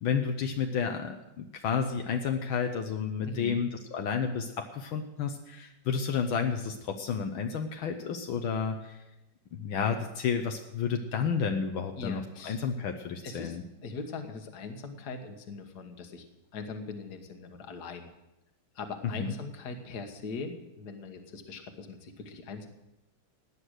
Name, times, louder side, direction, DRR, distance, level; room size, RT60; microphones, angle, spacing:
voice 1, 0.0-9.0 9.6-13.6 19.2-19.3, left 6 dB, 75° left, 5 dB, 1.7 m, -31 dB
voice 2, 3.2-3.7 12.0-12.7 13.2-18.1 18.8-22.7, left 4 dB, 55° left, 6 dB, 1.9 m, -41 dB
17.5 x 9.9 x 6.5 m, 0.92 s
omnidirectional pair, 2.3 m